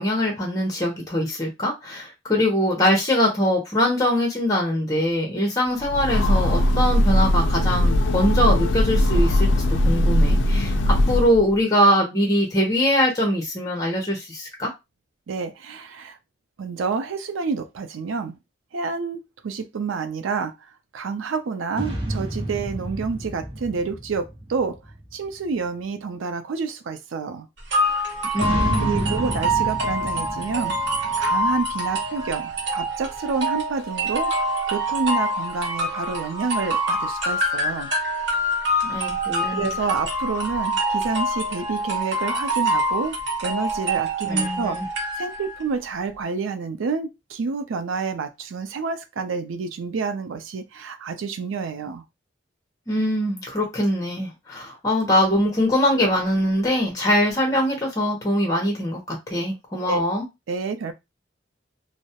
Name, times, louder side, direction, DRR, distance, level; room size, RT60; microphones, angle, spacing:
voice 1, 0.0-9.5 9.8-14.7 28.3-29.2 38.9-39.7 44.3-44.9 52.9-60.3, equal, 20° left, 0.6 m, -22 dB
Train, 5.8-11.5, left 1 dB, 70° left, 0.4 m, -19 dB
voice 2, 15.3-16.2 16.6-18.4 18.7-20.5 20.9-24.8 25.1-27.5 28.8-30.8 31.2-34.3 34.7-37.9 39.5-44.8 45.2-52.0 59.9-60.0 60.5-60.9, right 4 dB, 85° right, 0.4 m, -28 dB
sound 1, 21.7-25.4 28.3-32.1, right 1 dB, 25° right, 0.8 m, -30 dB
sound 2, 27.7-45.6, right 1 dB, 65° right, 0.9 m, -25 dB
2.2 x 2.0 x 2.8 m
head